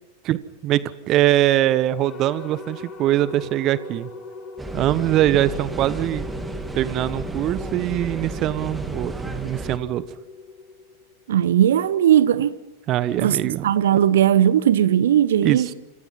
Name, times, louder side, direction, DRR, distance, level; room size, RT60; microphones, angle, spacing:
voice 1, 0.2-4.1 4.7-6.3 6.7-10.0 12.9-13.7 15.4-15.7, right 13 dB, 35° right, 1.1 m, -22 dB
sound 1, 2.0-11.3, left 3 dB, 25° left, 6.8 m, -40 dB
sound 2, 4.6-9.8, right 2 dB, 10° right, 3.1 m, -32 dB
voice 2, 11.3-12.6 13.2-15.7, right 10 dB, 60° right, 1.0 m, -18 dB
30.0 x 27.0 x 5.8 m
figure-of-eight pair, 90°, 0 cm